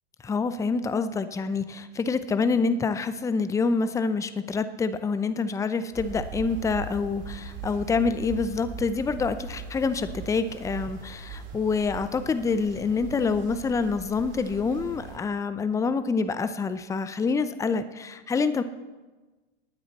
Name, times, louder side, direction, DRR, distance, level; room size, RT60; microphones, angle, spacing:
voice 1, 0.2-18.6, left 4 dB, 10° left, 12 dB, 0.5 m, -27 dB
sound 1, 5.9-15.2, right 4 dB, 40° right, 2.3 m, -40 dB
18.5 x 9.4 x 4.1 m, 1.2 s
hypercardioid pair, 110°, 30 cm